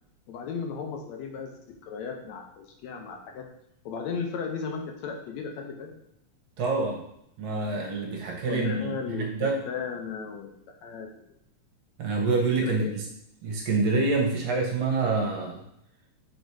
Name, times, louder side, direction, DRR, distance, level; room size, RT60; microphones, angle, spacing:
voice 1, 0.3-1.5 1.8-3.5 3.9-5.9 8.5-10.5 10.8-11.1 12.6-12.9, left 5 dB, 75° left, 2 dB, 2.0 m, -35 dB
voice 2, 6.6-7.0 7.4-9.6 12.0-13.0 13.4-15.6, right 3 dB, 65° right, 0 dB, 2.0 m, -26 dB
5.1 x 4.3 x 4.6 m, 0.75 s
omnidirectional pair, 3.3 m